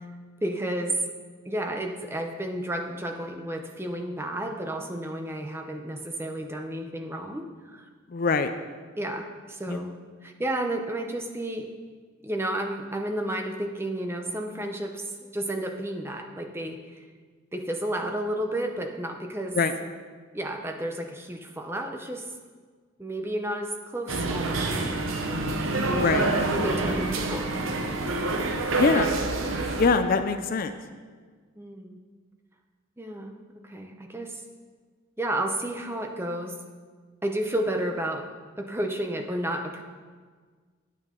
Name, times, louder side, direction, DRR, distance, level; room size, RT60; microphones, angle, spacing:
voice 1, 0.4-1.0 1.4-7.9 9.0-9.9 10.2-11.7 12.2-15.0 15.3-17.0 17.5-19.6 20.3-22.3 23.0-26.1 26.5-27.5 31.6-32.0 33.0-33.3 33.6-34.4 35.2-36.6 37.2-38.3 38.6-39.8, right 1 dB, 10° right, 4 dB, 0.6 m, -32 dB
voice 2, 8.1-8.5 9.7-9.8 19.6-19.7 26.0-26.3 28.8-29.1 29.8-30.7, left 4 dB, 45° left, 9 dB, 0.4 m, -23 dB
sound 1, 24.1-29.9, right 2 dB, 80° right, 0.9 m, -27 dB
9.1 x 9.0 x 3.8 m, 1.5 s
head